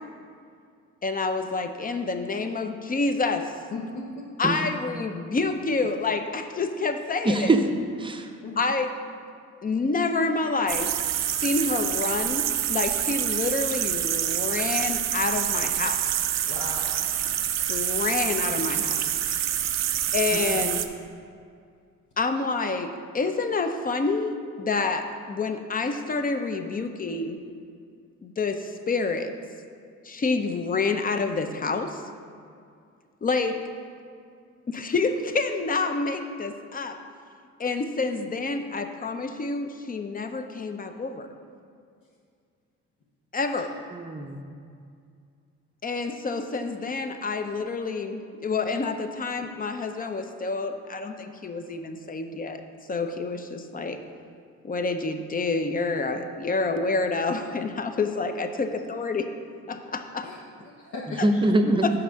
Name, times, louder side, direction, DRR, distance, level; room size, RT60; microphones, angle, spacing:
voice 1, 1.0-3.5 4.4-7.5 8.6-8.9 9.6-10.9 11.4-12.4 12.7-16.1 17.7-19.1 20.1-20.8 22.2-27.4 28.2-29.3 30.0-32.0 33.2-33.6 34.7-37.0 37.6-41.3 43.3-43.7 45.8-52.6 52.9-54.0 54.6-59.3 59.7-60.3 61.2-61.3 61.8-61.9, left 3 dB, 30° left, 7 dB, 0.5 m, -28 dB
voice 2, 3.7-4.2 8.4-8.6 16.4-16.9 17.5-17.7 19.3-19.4 27.0-27.1 43.6-43.7 58.7-58.8 60.2-60.4 60.6-61.4, left 2 dB, 70° left, -4 dB, 1.0 m, -38 dB
voice 3, 7.2-7.6 8.0-8.3 20.3-20.6 43.9-44.5 61.2-61.9, right 2 dB, 15° right, 5 dB, 0.6 m, -23 dB
sound 1, 10.7-20.9, right 11 dB, 60° right, 0.5 m, -27 dB
5.8 x 4.5 x 6.2 m, 2.3 s
cardioid pair, 90°, 30 cm